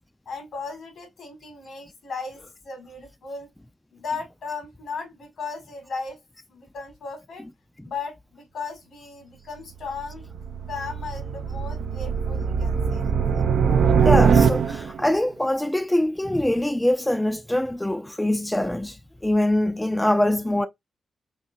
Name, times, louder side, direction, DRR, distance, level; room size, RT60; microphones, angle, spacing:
voice 1, 0.2-3.5 3.9-6.2 6.5-7.5 7.8-10.2 10.7-13.1, left 4 dB, 75° left, 1.6 m, -36 dB
sound 1, 9.8-15.1, right 6 dB, 75° right, 0.3 m, -22 dB
voice 2, 14.0-20.7, left 1 dB, 10° left, 0.3 m, -23 dB
3.6 x 2.8 x 2.5 m
cardioid pair, 80°, 0 cm